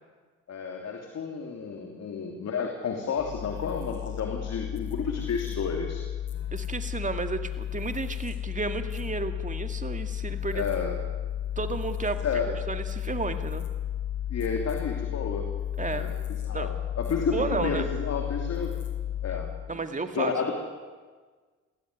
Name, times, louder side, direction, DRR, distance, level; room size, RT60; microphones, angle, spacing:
voice 1, 0.5-6.0 10.5-10.9 12.2-12.5 14.3-15.5 15.9-18.7 19.2-19.8 20.1-20.6, left 5 dB, 55° left, 3 dB, 3.1 m, -31 dB
sound 1, 3.2-19.7, left 11 dB, 40° left, 4.6 m, -33 dB
voice 2, 6.5-10.6 11.6-12.2 12.7-13.7 15.8-16.1 16.5-16.7 17.3-17.9 19.7-20.3, right 4 dB, 25° right, 8 dB, 2.1 m, -32 dB
22.0 x 16.0 x 9.7 m, 1.4 s
cardioid pair, 90°, 30 cm